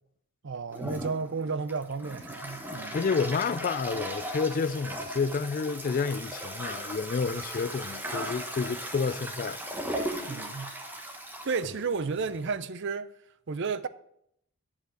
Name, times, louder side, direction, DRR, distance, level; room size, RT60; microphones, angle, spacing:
voice 1, 0.4-3.0 10.3-10.7 11.4-13.1 13.5-13.9, right 4 dB, 55° right, 0.6 m, -32 dB
Toilet flush, 0.7-12.5, equal, 10° right, 1.2 m, -37 dB
voice 2, 2.9-9.6, left 5 dB, 40° left, 0.3 m, -30 dB
10.5 x 5.1 x 7.9 m
head